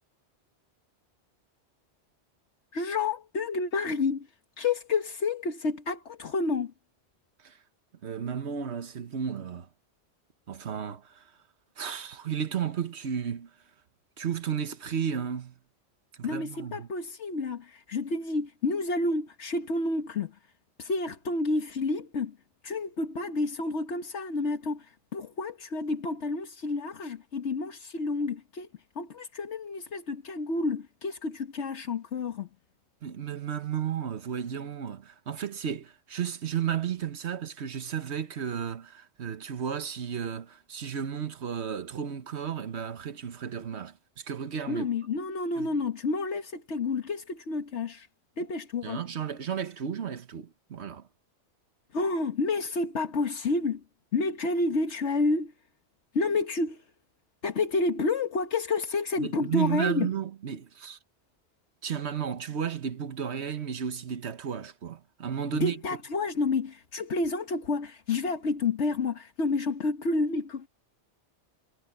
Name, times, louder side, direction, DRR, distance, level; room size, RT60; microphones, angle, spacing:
voice 1, 2.7-4.3 4.6-6.7 16.2-20.4 20.8-22.4 22.6-28.7 28.9-32.5 44.7-48.1 48.4-49.0 51.9-53.8 54.1-55.5 56.1-56.8 57.4-60.1 65.5-70.7, left 3 dB, 80° left, 1.6 m, -29 dB
voice 2, 8.0-9.7 10.5-11.3 11.8-13.5 14.2-15.6 16.2-16.9 33.0-44.9 45.6-45.7 48.8-51.1 59.2-61.0 61.8-65.8, right 8 dB, 70° right, 1.4 m, -33 dB
omnidirectional pair, 1.2 m